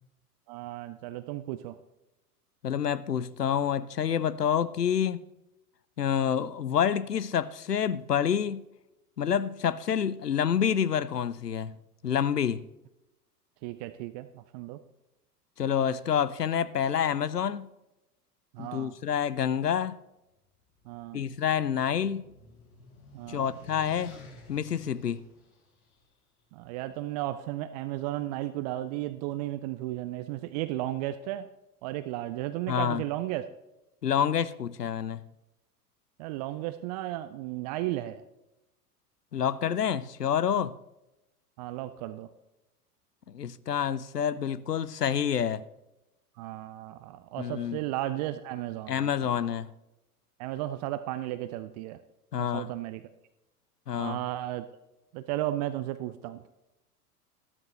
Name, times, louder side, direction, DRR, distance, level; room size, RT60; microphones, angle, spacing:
voice 1, 0.5-1.8 13.6-14.8 18.5-18.9 20.9-21.2 23.1-23.5 26.5-31.5 31.8-33.5 36.2-38.2 41.6-42.3 46.4-49.4 50.4-52.0 52.4-53.0 54.0-54.7 55.1-56.4, right 14 dB, 30° right, 0.4 m, -34 dB
voice 2, 2.6-5.2 6.0-8.6 9.2-11.8 12.0-12.7 15.6-17.7 18.6-20.0 21.1-22.3 23.3-24.2 24.5-25.2 32.7-33.0 34.0-35.2 39.3-40.8 43.3-45.6 47.4-47.8 48.9-49.7 52.3-52.7 53.9-54.2, left 8 dB, 90° left, 0.6 m, -28 dB
sound 1, 20.7-26.0, left 2 dB, 65° left, 4.2 m, -52 dB
13.0 x 12.5 x 3.3 m
figure-of-eight pair, 90°, 46 cm